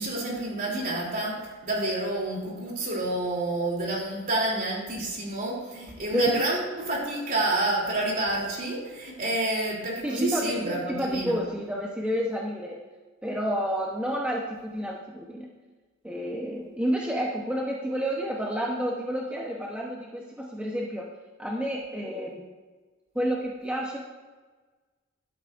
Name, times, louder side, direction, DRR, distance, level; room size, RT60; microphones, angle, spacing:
voice 1, 0.0-11.3, right 2 dB, 45° right, -2 dB, 3.2 m, -29 dB
voice 2, 10.0-12.8 13.2-15.5 16.0-21.1 21.4-22.5 23.1-24.0, equal, 5° right, -2 dB, 0.9 m, -30 dB
13.0 x 12.0 x 2.6 m, 1.4 s
head